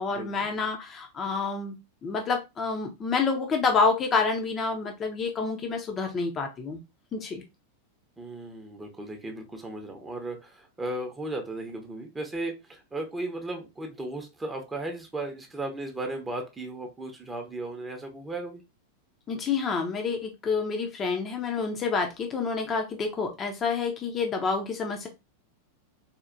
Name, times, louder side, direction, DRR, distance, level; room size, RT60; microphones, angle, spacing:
voice 1, 0.0-1.8 2.0-6.8 7.1-7.4 19.3-25.1, left 4 dB, 25° left, 0.7 m, -28 dB
voice 2, 8.2-18.6, right 2 dB, 10° right, 0.8 m, -36 dB
4.3 x 2.5 x 2.5 m
figure-of-eight pair, 90°, 0 cm